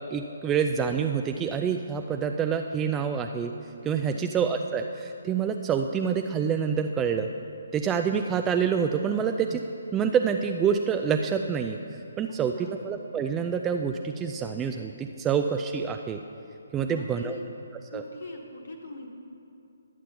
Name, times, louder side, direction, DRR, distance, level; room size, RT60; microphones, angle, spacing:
voice 1, 0.1-3.5 3.8-7.3 7.7-9.6 9.9-11.8 12.2-16.2 16.7-17.4 17.9-18.0, right 7 dB, 15° right, 5 dB, 0.3 m, -27 dB
voice 2, 12.3-12.8 16.8-17.5 17.9-19.1, left 2 dB, 55° left, 1 dB, 1.2 m, -42 dB
11.5 x 7.3 x 5.6 m, 2.7 s
figure-of-eight pair, 140°, 0 cm